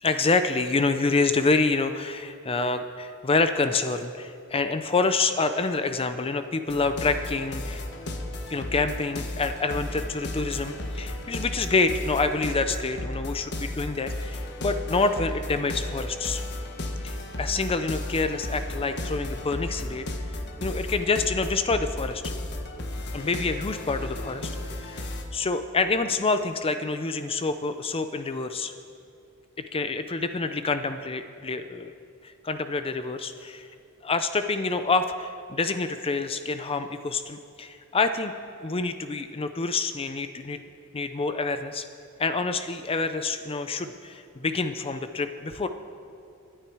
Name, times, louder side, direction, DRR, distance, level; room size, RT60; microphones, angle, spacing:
voice 1, 0.0-7.8 8.5-16.4 17.0-20.1 20.6-22.2 23.1-24.5 24.8-28.7 29.7-31.9 32.2-33.7 34.0-38.3 38.6-40.6 40.9-41.9 42.2-45.7, left 3 dB, 25° left, 9 dB, 0.5 m, -27 dB
sound 1, 6.7-25.2, left 1 dB, 50° left, 1.3 m, -34 dB
27.0 x 10.0 x 4.7 m, 2.5 s
head